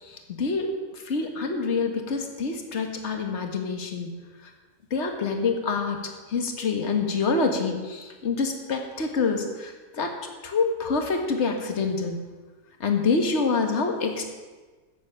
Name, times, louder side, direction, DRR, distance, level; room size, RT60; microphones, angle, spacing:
voice 1, 0.0-0.7 0.9-4.1 4.9-6.0 6.3-10.2 10.4-12.2 12.8-14.3, left 4 dB, 45° left, 4 dB, 1.9 m, -26 dB
14.0 x 7.3 x 8.9 m, 1.3 s
omnidirectional pair, 1.7 m